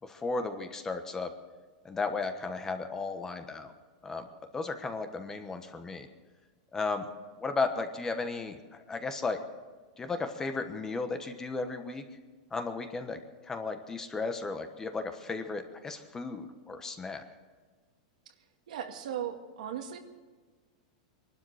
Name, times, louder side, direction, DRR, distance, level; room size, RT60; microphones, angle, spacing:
voice 1, 0.0-1.3 1.8-3.7 4.0-4.3 4.5-6.1 6.7-7.1 7.4-9.4 10.0-12.0 12.5-17.2, left 3 dB, 15° left, 7 dB, 1.2 m, -35 dB
voice 2, 18.7-20.0, right 9 dB, 80° right, 4 dB, 2.1 m, -37 dB
22.5 x 12.0 x 4.9 m, 1.4 s
supercardioid pair, 150°, 4 cm